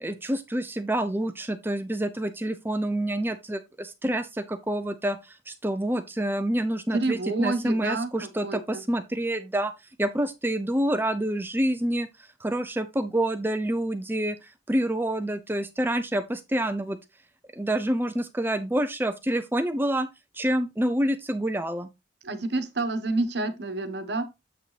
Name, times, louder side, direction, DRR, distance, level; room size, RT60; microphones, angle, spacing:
voice 1, 0.0-9.7 10.0-12.1 12.4-14.4 14.7-17.0 17.6-20.1 20.3-21.9, right 1 dB, 10° right, 0.5 m, -27 dB
voice 2, 6.9-8.8 22.2-24.2, right 2 dB, 60° right, 1.2 m, -29 dB
8.1 x 6.3 x 3.3 m
head